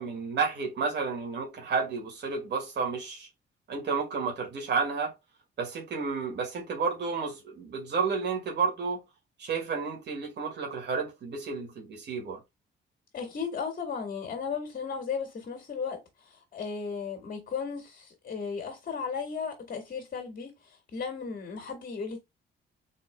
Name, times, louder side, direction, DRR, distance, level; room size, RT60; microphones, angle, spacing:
voice 1, 0.0-3.3 3.7-5.1 5.6-9.0 9.4-12.4, right 5 dB, 60° right, 1.9 m, -31 dB
voice 2, 13.1-22.2, left 5 dB, 45° left, 1.8 m, -35 dB
4.2 x 3.9 x 2.2 m
cardioid pair, 90°, 20 cm